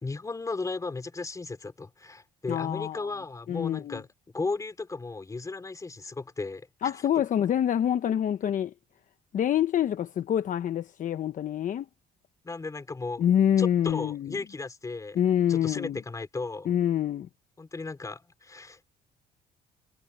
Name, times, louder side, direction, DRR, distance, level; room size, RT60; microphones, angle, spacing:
voice 1, 0.0-4.1 4.3-6.9 12.4-13.2 13.6-15.2 15.5-16.7 17.6-18.9, left 3 dB, 20° left, 3.2 m, -35 dB
voice 2, 2.5-3.1 3.5-4.0 6.8-8.7 9.3-11.9 13.2-14.4 15.1-16.0 16.7-17.3, left 10 dB, 50° left, 1.0 m, -26 dB
cardioid pair, 110°, 17 cm